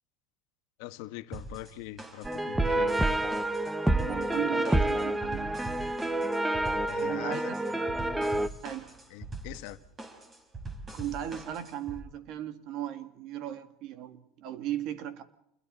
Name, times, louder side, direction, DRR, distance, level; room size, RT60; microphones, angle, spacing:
voice 1, 0.8-2.9 6.9-7.5 9.1-9.8, left 16 dB, 70° left, 1.4 m, -42 dB
sound 1, 1.3-12.0, right 2 dB, 25° right, 5.0 m, -43 dB
sound 2, 2.2-8.5, right 1 dB, 5° right, 1.0 m, -28 dB
voice 2, 3.9-5.5 7.0-8.1 8.6-8.9 10.9-15.2, right 11 dB, 55° right, 2.5 m, -37 dB
29.0 x 22.0 x 4.2 m
supercardioid pair, 115°, 0 cm